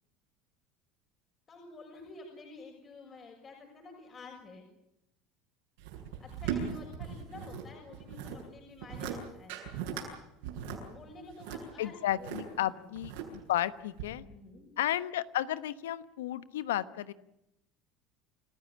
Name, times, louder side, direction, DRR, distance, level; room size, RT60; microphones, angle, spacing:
voice 1, 1.5-4.7 6.2-9.6 10.9-12.9 14.2-14.7, left 3 dB, 35° left, 0 dB, 6.7 m, -50 dB
sound 1, 5.8-7.6 7.9-8.4 8.8-9.2 9.5-10.1 10.4-12.4 13.0-13.5 14.0-14.1, right 8 dB, 75° right, 7.8 m, -38 dB
voice 2, 11.8-14.2 14.8-17.1, left 13 dB, 85° left, 15 dB, 1.1 m, -33 dB
29.5 x 15.0 x 8.6 m, 0.84 s
hypercardioid pair, 80°, 0 cm